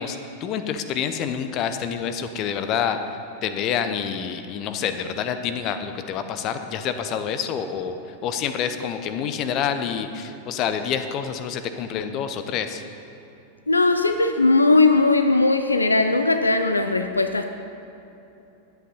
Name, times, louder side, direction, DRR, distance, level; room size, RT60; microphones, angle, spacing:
voice 1, 0.0-3.2 3.4-12.8, left 7 dB, 35° left, 9 dB, 0.7 m, -27 dB
voice 2, 13.7-17.4, left 3 dB, 80° left, 8 dB, 0.4 m, -19 dB
11.5 x 8.3 x 5.4 m, 2.9 s
figure-of-eight pair, 90°, 0 cm